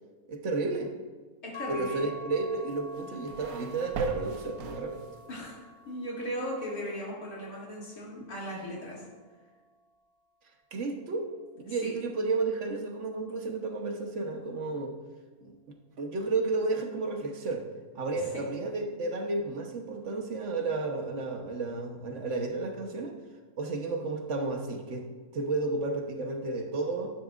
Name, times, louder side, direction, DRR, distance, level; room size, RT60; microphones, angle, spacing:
voice 1, 0.3-0.9 1.7-5.0 10.7-11.3 11.7-15.0 15.4-15.6 16.0-17.6 17.9-23.2 23.6-25.1 25.3-27.1, right 3 dB, 60° right, 4 dB, 1.3 m, -32 dB
voice 2, 1.4-2.0 5.3-9.0 11.8-11.9, equal, 85° left, -6 dB, 3.3 m, -37 dB
sound 1, 1.5-9.8, equal, 20° left, 2.0 m, -48 dB
sound 2, 2.7-5.4, right 4 dB, 85° right, 1.2 m, -41 dB
11.0 x 10.5 x 2.4 m, 1.4 s
omnidirectional pair, 1.5 m